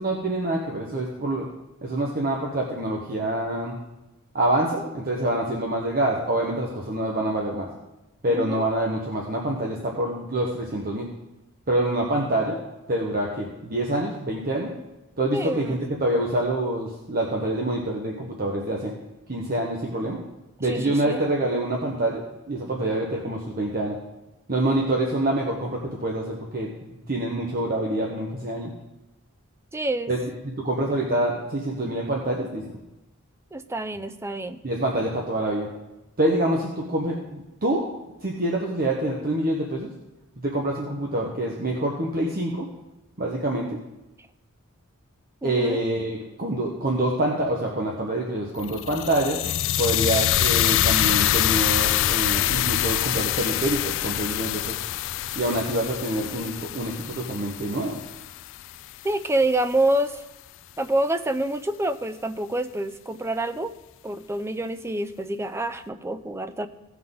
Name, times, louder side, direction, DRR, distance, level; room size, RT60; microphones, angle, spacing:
voice 1, 0.0-1.5 1.8-3.8 4.3-7.7 8.2-11.1 11.7-12.6 12.9-14.7 15.2-18.9 19.3-20.2 20.6-22.2 22.5-24.0 24.5-28.7 30.1-30.2 30.4-32.6 34.6-35.7 36.2-39.9 40.4-42.7 43.2-43.7 45.4-49.4 49.8-54.8 55.3-58.0, right 1 dB, 40° right, -1 dB, 1.1 m, -26 dB
voice 2, 8.3-8.6 15.3-15.8 20.6-21.2 29.7-30.1 33.5-34.6 45.4-45.8 59.0-60.3 60.8-63.7 64.0-66.7, right 1 dB, 10° right, 9 dB, 0.4 m, -27 dB
sound 1, 48.6-58.7, left 13 dB, 60° left, 0.3 m, -25 dB
16.5 x 5.9 x 3.8 m, 0.99 s
head